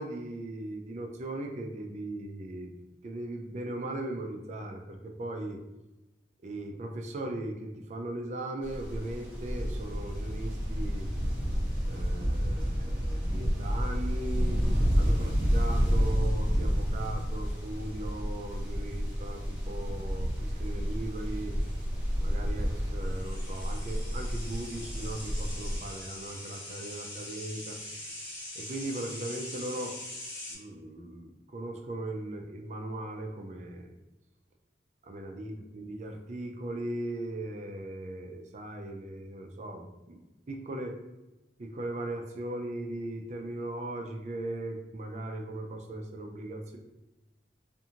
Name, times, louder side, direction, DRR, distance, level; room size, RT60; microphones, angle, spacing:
voice 1, 0.0-2.8 3.0-5.6 6.4-11.1 11.8-14.6 14.9-21.5 22.2-27.8 28.6-30.0 30.5-33.9 35.0-41.0 41.6-46.8, right 1 dB, 40° right, 3 dB, 0.3 m, -38 dB
sound 1, 8.6-25.8, equal, 10° right, 0.7 m, -30 dB
sound 2, 14.3-15.0 16.0-16.4 18.9-19.1 21.3-21.4 21.6-21.8 23.0-30.6, left 1 dB, 55° left, 1.3 m, -43 dB
2.5 x 2.4 x 2.8 m, 0.99 s
head